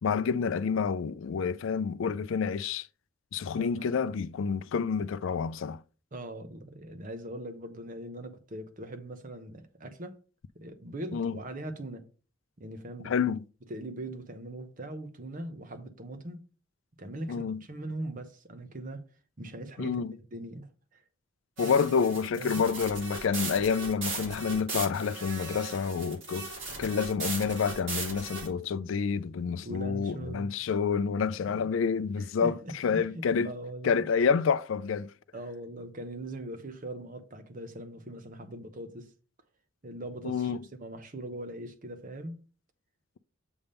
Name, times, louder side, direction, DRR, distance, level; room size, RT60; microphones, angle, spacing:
voice 1, 0.0-2.9 3.3-5.8 11.1-11.3 13.0-13.4 17.3-17.6 19.8-20.1 21.6-26.5 26.8-33.5 33.8-35.1 40.2-40.6, left 6 dB, 65° left, 0.4 m, -28 dB
voice 2, 3.6-4.0 6.1-10.2 10.5-12.0 12.6-13.1 13.7-16.4 17.0-19.0 19.4-21.0 21.6-21.8 22.4-22.6 29.6-30.5 31.4-31.6 32.2-34.0 35.3-39.1 39.8-42.4, right 1 dB, 40° right, 0.9 m, -41 dB
sound 1, 21.6-28.5, right 3 dB, 65° right, 3.7 m, -37 dB
7.0 x 3.5 x 5.4 m
head